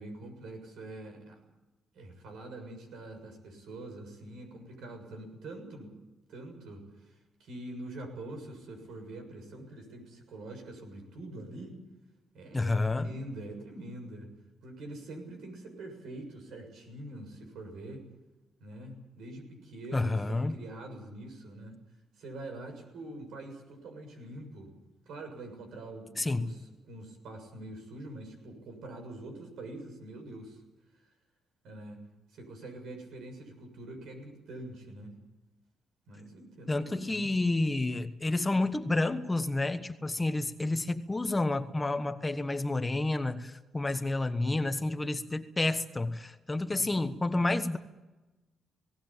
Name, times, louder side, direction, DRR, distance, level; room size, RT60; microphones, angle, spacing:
voice 1, 0.0-1.5 1.9-6.0 6.3-11.8 12.3-12.7 13.0-14.3 14.6-18.1 18.6-21.8 22.2-24.7 25.1-26.6 26.9-30.6 31.6-32.0 32.3-35.1 36.1-37.3 46.7-47.1, right 1 dB, 75° right, 5 dB, 6.8 m, -44 dB
voice 2, 12.5-13.1 19.9-20.5 26.2-26.5 36.7-47.8, left 2 dB, 20° left, 9 dB, 1.2 m, -30 dB
19.0 x 17.5 x 8.9 m, 1.1 s
cardioid pair, 90°, 0 cm